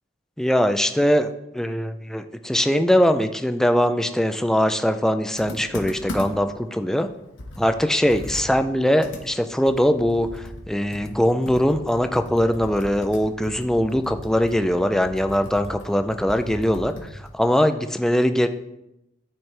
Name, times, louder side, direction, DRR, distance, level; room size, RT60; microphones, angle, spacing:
voice 1, 0.4-7.1 7.6-16.9 17.3-18.5, equal, 5° left, 8 dB, 0.4 m, -21 dB
Computer keyboard, 5.4-6.5 7.0-7.1 7.4-10.7 10.9-17.4, left 1 dB, 80° left, 1.3 m, -38 dB
12.0 x 4.5 x 3.3 m, 0.87 s
head